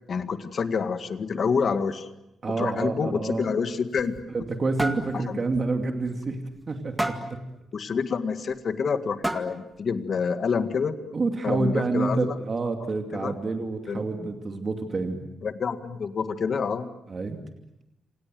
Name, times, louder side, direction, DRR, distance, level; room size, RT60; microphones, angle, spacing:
voice 1, 0.1-2.1 2.6-4.1 5.1-5.4 7.7-11.0 11.4-12.4 13.1-13.4 13.9-14.3 15.4-16.9, left 5 dB, 45° left, 9 dB, 1.9 m, -28 dB
voice 2, 2.4-3.5 4.3-6.4 6.7-7.4 11.1-15.2 17.1-17.4, right 3 dB, 30° right, 4 dB, 2.5 m, -28 dB
sound 1, 3.8-4.5 4.8-5.1 5.5-5.7 6.1-6.2 7.0-7.4 8.5-8.6 9.2-9.7, right 1 dB, 10° right, 2.0 m, -30 dB
28.0 x 27.5 x 7.7 m, 0.89 s
wide cardioid pair, 150°, 0 cm